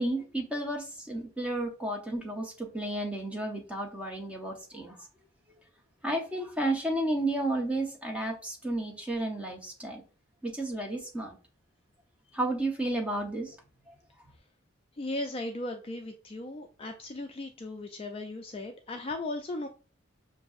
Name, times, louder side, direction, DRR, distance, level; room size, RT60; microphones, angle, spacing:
voice 1, 0.0-5.0 6.0-10.0 10.4-11.4 12.3-13.6, right 1 dB, 5° right, 1 dB, 0.7 m, -32 dB
voice 2, 15.0-19.7, left 2 dB, 30° left, 5 dB, 0.3 m, -37 dB
5.9 x 2.6 x 2.3 m, 0.34 s
head